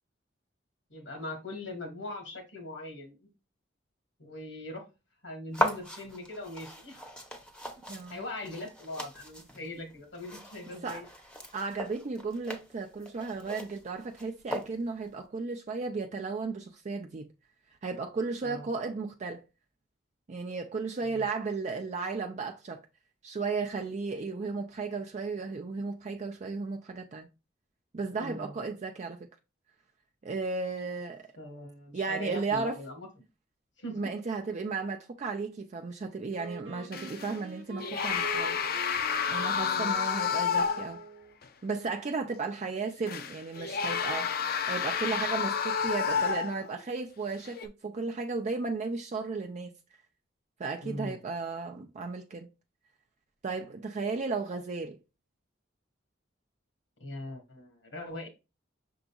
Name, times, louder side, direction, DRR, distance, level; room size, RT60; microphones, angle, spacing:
voice 1, 0.9-3.2 4.2-4.8 5.2-7.1 7.9-11.1 18.4-18.7 21.1-21.2 28.2-28.6 31.4-33.1 33.8-34.0 39.6-40.0 50.8-51.2 57.0-58.3, left 1 dB, 90° left, 1.4 m, -41 dB
sound 1, 5.5-15.1, left 1 dB, 5° left, 0.7 m, -38 dB
voice 2, 7.9-8.2 10.8-11.0 11.5-17.3 17.8-19.4 20.3-22.8 23.2-27.3 27.9-29.2 30.2-31.3 31.9-32.8 33.9-38.6 39.3-41.0 41.6-49.7 50.6-52.5 53.4-55.0, right 4 dB, 40° right, 0.4 m, -34 dB
Wind instrument woodwind instrument, 36.3-41.4, right 3 dB, 85° right, 0.8 m, -45 dB
sound 2, 36.9-37.4 37.8-41.0 41.4-41.5 43.1-46.8 47.4-47.7, left 6 dB, 55° left, 0.5 m, -30 dB
6.0 x 3.9 x 2.3 m
head